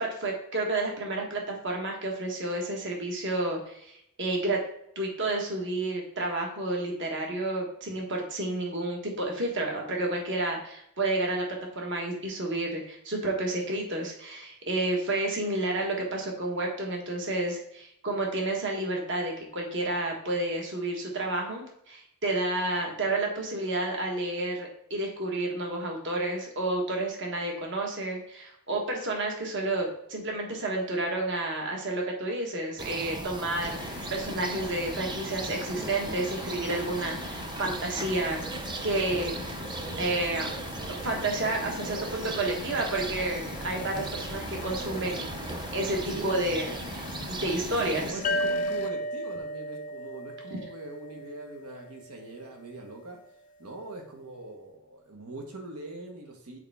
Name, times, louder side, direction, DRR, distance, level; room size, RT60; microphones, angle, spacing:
voice 1, 0.0-4.6 4.9-11.4 11.7-38.4 38.8-39.6 40.0-40.5 40.9-48.1, right 2 dB, 55° right, 0 dB, 1.3 m, -30 dB
sound 1, 32.8-48.1, right 3 dB, 20° right, 0.4 m, -37 dB
sound 2, 33.6-48.9, left 6 dB, 90° left, 0.5 m, -42 dB
voice 2, 46.1-46.4 47.6-53.2 53.6-56.6, right 2 dB, 85° right, 2 dB, 1.3 m, -42 dB
sound 3, 48.2-51.7, equal, 35° left, 0.5 m, -33 dB
6.6 x 4.4 x 3.5 m, 0.75 s
head